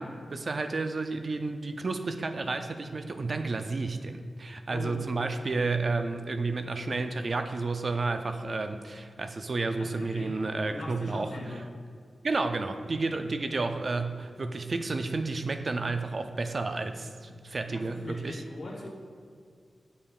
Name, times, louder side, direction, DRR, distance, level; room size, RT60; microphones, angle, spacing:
voice 1, 0.0-11.3 12.2-18.4, right 3 dB, 40° right, 7 dB, 0.4 m, -31 dB
voice 2, 4.7-5.1 9.8-11.6 17.7-18.9, left 2 dB, 65° left, -1 dB, 1.3 m, -41 dB
9.8 x 5.4 x 2.3 m, 2.1 s
wide cardioid pair, 135°, 0 cm